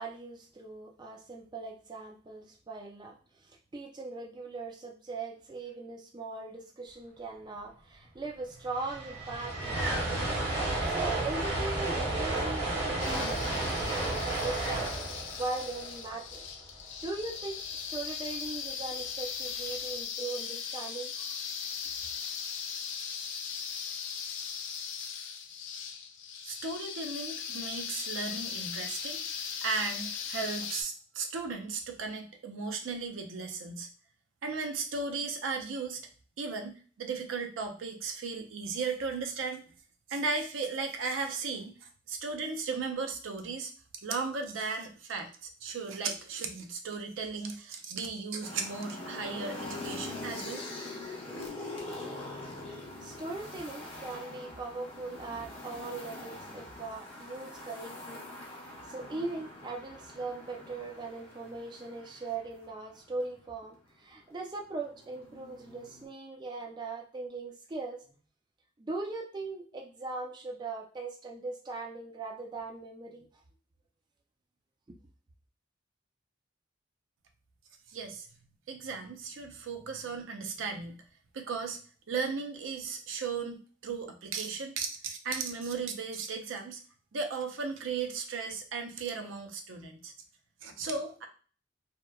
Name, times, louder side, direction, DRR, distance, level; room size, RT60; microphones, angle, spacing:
voice 1, 0.0-10.3 10.8-14.9 15.4-16.4 17.0-21.2 53.0-58.2 58.8-68.0 68.8-73.3 74.9-75.0, right 3 dB, 25° right, 1 dB, 0.4 m, -40 dB
sound 1, 8.3-8.4 8.5-16.8, right 2 dB, 55° right, 0.9 m, -32 dB
sound 2, 13.0-30.8, left 7 dB, 70° left, 0.4 m, -38 dB
voice 2, 26.4-29.2 29.6-33.9 34.4-36.0 36.4-39.6 40.1-41.7 42.1-43.7 44.0-50.6 77.9-78.3 78.7-81.0 81.3-81.8 82.1-86.8 87.1-90.1 90.6-91.3, right 4 dB, 80° right, 4 dB, 0.5 m, -36 dB
sound 3, 48.4-63.3 64.3-66.1, left 2 dB, 30° left, 0.6 m, -43 dB
2.8 x 2.1 x 2.3 m, 0.40 s
head